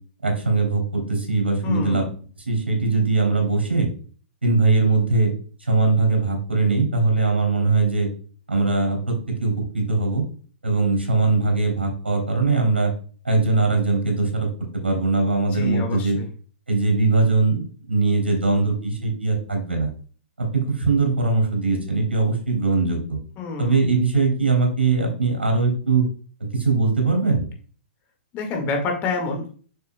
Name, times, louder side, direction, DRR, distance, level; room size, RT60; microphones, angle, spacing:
voice 1, 0.2-2.0 2.4-3.9 4.4-5.3 5.6-8.1 8.5-10.2 10.6-12.9 13.2-14.5 14.8-16.2 16.7-19.9 20.4-23.2 23.6-26.0 26.5-27.5, right 3 dB, 85° right, 1 dB, 3.3 m, -21 dB
voice 2, 1.6-2.1 15.5-16.3 23.4-23.8 28.3-29.5, left 4 dB, 30° left, 3 dB, 1.9 m, -27 dB
6.9 x 6.4 x 2.3 m, 0.41 s
figure-of-eight pair, 115°, 6 cm